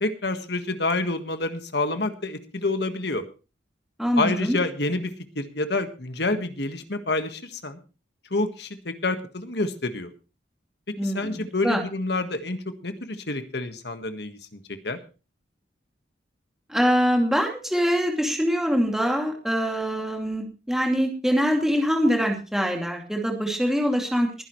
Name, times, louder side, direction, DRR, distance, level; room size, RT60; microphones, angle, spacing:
voice 1, 0.0-3.2 4.2-7.8 8.3-10.1 10.9-15.0, left 2 dB, 60° left, 8 dB, 1.6 m, -28 dB
voice 2, 4.0-4.6 11.0-11.4 11.6-11.8 16.7-24.3, equal, ahead, 1 dB, 2.6 m, -24 dB
21.5 x 11.0 x 3.2 m, 0.33 s
head